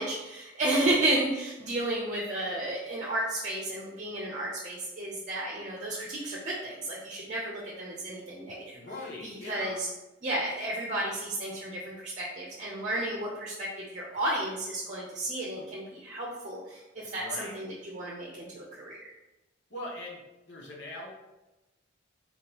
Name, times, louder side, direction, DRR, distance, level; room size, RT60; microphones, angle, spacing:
voice 1, 0.0-8.8 9.2-9.9 10.2-19.0, right 1 dB, 40° right, -4 dB, 0.7 m, -32 dB
voice 2, 8.7-9.8 17.1-17.6 19.7-21.1, left 2 dB, 65° left, -2 dB, 1.1 m, -41 dB
4.3 x 3.6 x 2.9 m, 1.0 s
head